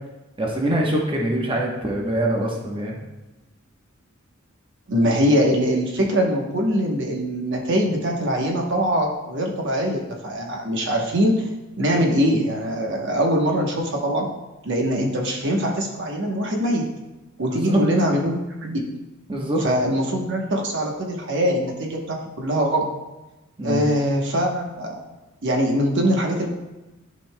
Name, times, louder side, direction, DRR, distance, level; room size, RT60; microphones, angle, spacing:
voice 1, 0.4-3.0 17.4-17.8 19.3-19.6 23.6-23.9, right 1 dB, 25° right, -2 dB, 1.0 m, -24 dB
voice 2, 4.9-11.5 11.8-14.2 14.6-16.8 17.4-18.8 19.6-22.8 23.6-24.9 25.4-26.5, equal, 60° right, 0 dB, 1.0 m, -22 dB
11.0 x 5.4 x 2.2 m, 1.1 s
head